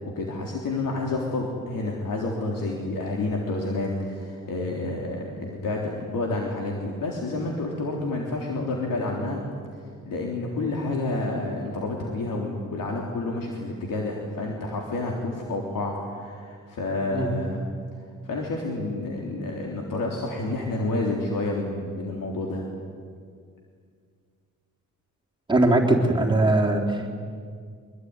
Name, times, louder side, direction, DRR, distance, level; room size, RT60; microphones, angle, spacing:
voice 1, 0.0-9.4 10.0-17.6 18.2-22.6, left 2 dB, 80° left, 0 dB, 3.6 m, -29 dB
voice 2, 25.5-27.2, right 2 dB, 15° right, -1 dB, 3.5 m, -21 dB
24.5 x 23.0 x 9.7 m, 2.1 s
cardioid pair, 110°, 33 cm